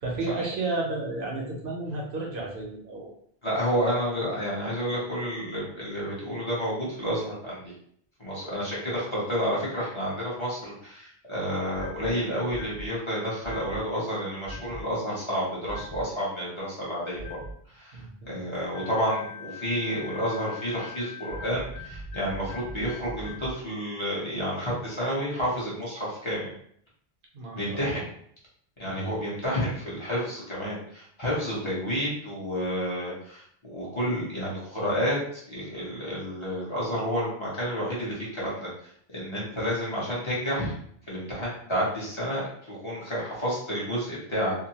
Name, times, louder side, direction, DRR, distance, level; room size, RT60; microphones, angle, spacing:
voice 1, 0.0-3.1 17.9-18.3 27.3-27.9 28.9-29.2, right 2 dB, 65° right, -1 dB, 0.7 m, -32 dB
voice 2, 3.4-7.6 8.2-17.4 17.7-18.0 18.3-26.5 27.5-28.1 28.8-40.8 41.1-44.5, equal, 30° left, -8 dB, 0.9 m, -30 dB
sound 1, 11.7-12.1 12.5-12.9 13.4-13.8 14.4-14.8 15.7-16.0 17.2-17.5 18.7-23.5, left 1 dB, 75° left, 0.9 m, -40 dB
2.7 x 2.1 x 2.8 m, 0.65 s
omnidirectional pair, 1.0 m